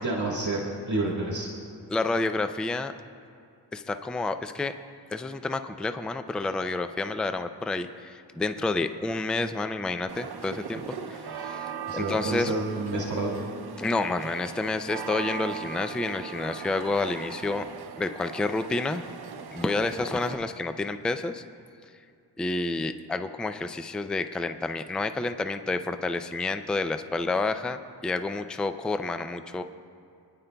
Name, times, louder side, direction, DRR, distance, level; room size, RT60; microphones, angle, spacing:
voice 1, 0.0-1.5 11.9-13.3, right 2 dB, 45° right, -3 dB, 1.7 m, -29 dB
voice 2, 1.9-2.9 3.7-4.7 5.1-12.5 13.8-17.6 18.0-19.0 19.5-21.4 22.4-29.6, left 3 dB, ahead, 9 dB, 0.3 m, -29 dB
sound 1, 10.1-20.4, right 7 dB, 65° right, 0.7 m, -39 dB
28.5 x 10.5 x 2.3 m, 2.5 s
wide cardioid pair, 115°, 40 cm